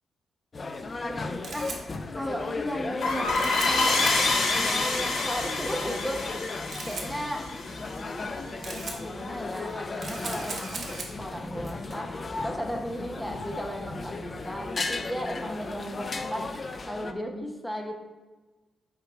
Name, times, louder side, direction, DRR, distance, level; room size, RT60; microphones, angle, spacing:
sound 1, 0.5-17.1, left 3 dB, 30° left, 0.4 m, -36 dB
voice 1, 1.0-3.3 3.6-4.3 4.5-6.4 6.9-7.5 8.2-17.9, equal, 5° left, 2 dB, 0.8 m, -36 dB
Camera, 1.1-14.4, right 3 dB, 40° right, 1.2 m, -42 dB
sound 2, 3.0-8.3, left 3 dB, 80° left, 1.4 m, -27 dB
6.9 x 4.7 x 4.6 m, 1.3 s
wide cardioid pair, 165°, 0 cm